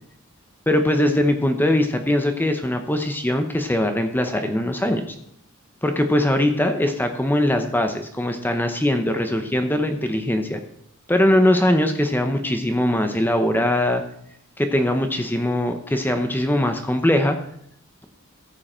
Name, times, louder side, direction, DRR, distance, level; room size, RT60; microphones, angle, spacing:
voice 1, 0.7-5.2 5.8-10.6 11.1-14.0 14.6-17.4, left 1 dB, 10° left, 6 dB, 0.7 m, -21 dB
14.5 x 7.5 x 4.4 m, 0.71 s
head